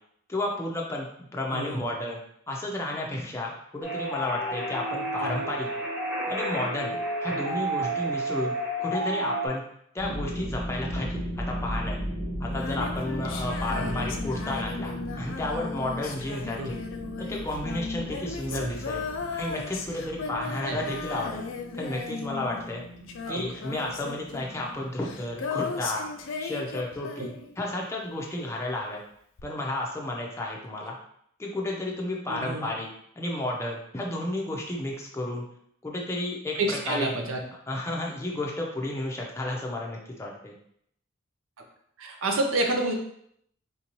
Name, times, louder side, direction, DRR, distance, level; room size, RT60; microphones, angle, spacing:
voice 1, 0.3-2.2 2.5-5.7 6.3-8.5 8.8-9.6 9.9-11.2 11.5-12.0 12.4-16.8 17.2-19.0 19.3-21.4 21.7-22.8 23.3-26.0 26.4-29.0 29.4-30.9 31.4-32.9 33.2-35.4 35.8-37.1 37.7-40.5, left 1 dB, 15° left, -2 dB, 0.5 m, -32 dB
voice 2, 1.5-1.8 5.2-5.4 13.8-14.0 16.6-16.7 18.5-18.7 20.5-20.8 23.3-23.5 27.2-27.3 32.3-32.7 36.5-37.4 42.0-42.9, right 2 dB, 80° right, 3 dB, 0.6 m, -29 dB
sound 1, 3.8-9.5, right 1 dB, 5° right, 0.9 m, -30 dB
sound 2, 10.0-26.6, equal, 45° right, 1.1 m, -37 dB
Female singing, 12.5-27.8 29.4-29.5, left 5 dB, 65° left, 0.4 m, -36 dB
3.6 x 2.7 x 3.0 m, 0.69 s
head